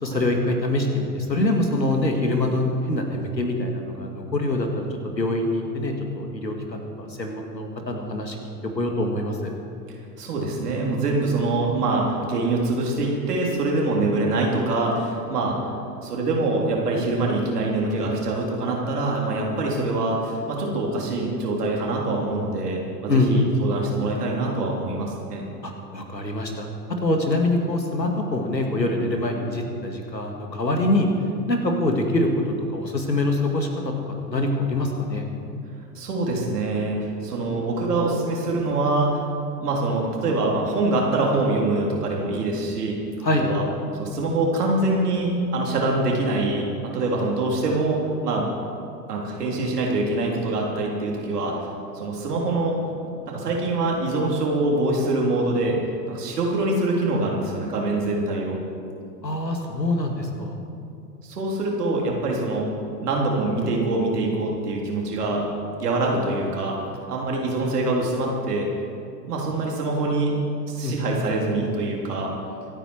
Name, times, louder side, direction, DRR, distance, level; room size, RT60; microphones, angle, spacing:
voice 1, 0.0-4.9 5.2-8.4 8.8-9.5 23.1-23.4 25.6-26.7 27.0-31.1 31.5-33.9 34.3-35.3 43.2-43.5 59.2-60.6 70.8-71.1, left 1 dB, 85° left, 3 dB, 2.3 m, -24 dB
voice 2, 10.2-15.6 16.0-25.5 36.0-39.2 39.6-43.0 43.4-43.6 44.0-46.7 46.9-48.5 49.1-51.6 51.9-52.8 53.3-55.8 56.1-58.6 61.2-62.7 63.0-65.5 65.8-66.8 67.1-68.7 69.3-70.3 70.7-72.3, right 2 dB, 65° right, -2 dB, 3.6 m, -24 dB
25.0 x 9.3 x 4.7 m, 2.5 s
figure-of-eight pair, 95°, 49 cm